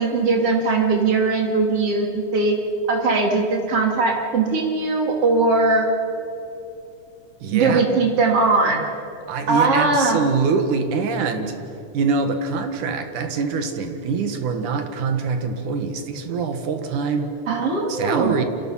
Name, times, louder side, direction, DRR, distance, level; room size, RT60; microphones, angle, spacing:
voice 1, 0.0-2.6 2.9-5.9 7.5-8.8 9.5-10.2 17.5-18.4, right 3 dB, 50° right, 1 dB, 3.7 m, -20 dB
voice 2, 7.4-7.8 9.3-11.5 11.9-17.3 17.9-18.4, right 5 dB, 85° right, 7 dB, 3.1 m, -24 dB
29.5 x 26.0 x 5.8 m, 2.9 s
omnidirectional pair, 3.4 m